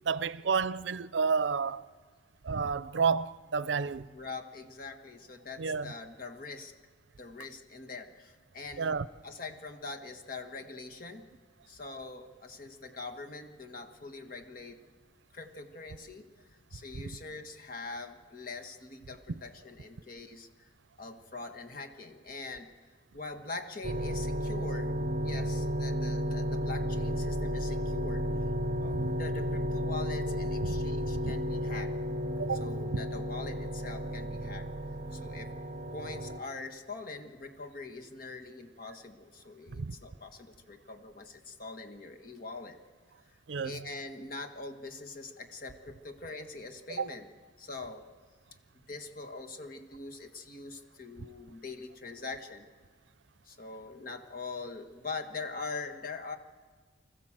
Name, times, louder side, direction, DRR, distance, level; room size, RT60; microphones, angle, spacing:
voice 1, 0.0-1.8 2.4-4.1 5.6-5.9 8.8-9.1 16.9-17.1 28.9-29.1 30.7-30.8 32.4-32.7 39.8-40.0 43.5-43.8 47.0-47.1, right 5 dB, 80° right, 0.5 m, -30 dB
voice 2, 4.1-6.7 7.2-8.9 9.2-11.3 11.7-14.9 15.3-20.7 21.0-22.7 23.1-24.9 25.2-28.2 28.8-31.9 32.6-34.7 35.1-35.5 35.9-42.8 43.3-47.3 47.6-48.1 48.9-52.7 53.4-56.4, left 3 dB, 50° left, 1.6 m, -43 dB
sound 1, 23.8-36.4, equal, 35° right, 0.7 m, -33 dB
25.5 x 14.5 x 7.5 m
head